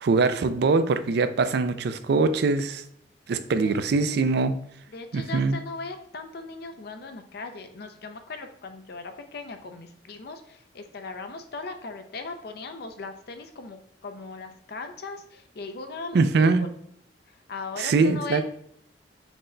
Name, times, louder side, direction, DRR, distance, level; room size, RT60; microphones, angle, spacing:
voice 1, 0.0-2.8 3.3-4.6 5.1-5.6 16.1-16.6 17.8-18.4, right 4 dB, 65° right, 11 dB, 0.4 m, -22 dB
voice 2, 4.9-16.7 17.3-18.4, left 3 dB, 65° left, 7 dB, 0.5 m, -38 dB
6.0 x 2.1 x 3.8 m, 0.69 s
head